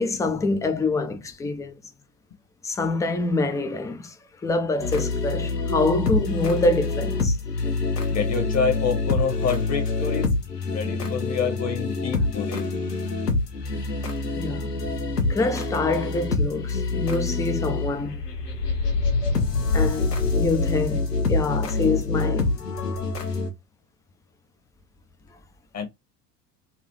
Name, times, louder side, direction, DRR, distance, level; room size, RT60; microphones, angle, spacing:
voice 1, 0.0-1.8 2.6-4.2 4.4-7.4 14.4-14.7 15.3-18.2 19.7-22.6, left 3 dB, 10° left, 0.4 m, -26 dB
sound 1, 4.8-23.5, left 3 dB, 80° left, 1.1 m, -26 dB
voice 2, 8.1-10.3 10.7-12.7 25.7-25.9, left 6 dB, 35° left, 1.2 m, -27 dB
4.1 x 2.4 x 3.0 m
figure-of-eight pair, 75°, 48 cm